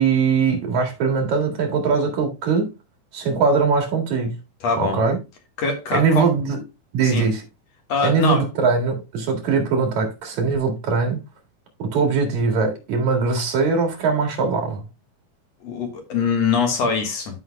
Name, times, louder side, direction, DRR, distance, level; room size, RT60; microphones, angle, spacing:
voice 1, 0.0-2.7 3.1-4.4 4.8-5.2 5.9-6.6 6.9-7.4 8.0-11.2 11.8-14.8, right 5 dB, 70° right, 3.3 m, -21 dB
voice 2, 4.6-5.0 5.6-6.3 7.0-7.3 7.9-8.4 15.6-17.4, left 5 dB, 65° left, 2.6 m, -23 dB
13.0 x 5.6 x 2.2 m
omnidirectional pair, 3.4 m